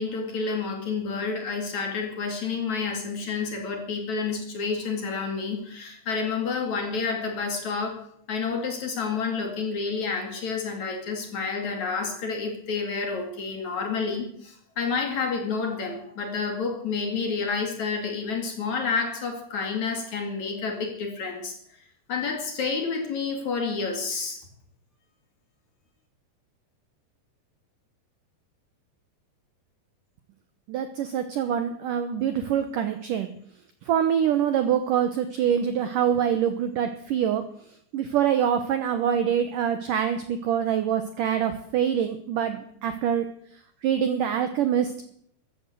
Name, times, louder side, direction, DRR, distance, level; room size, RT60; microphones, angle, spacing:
voice 1, 0.0-8.0 8.3-21.6 22.1-24.4, left 5 dB, 50° left, 4 dB, 3.1 m, -29 dB
voice 2, 30.7-33.3 33.9-37.4 37.9-43.3 43.8-44.9, right 9 dB, 75° right, 9 dB, 2.0 m, -25 dB
14.5 x 11.5 x 8.0 m, 0.68 s
omnidirectional pair, 5.1 m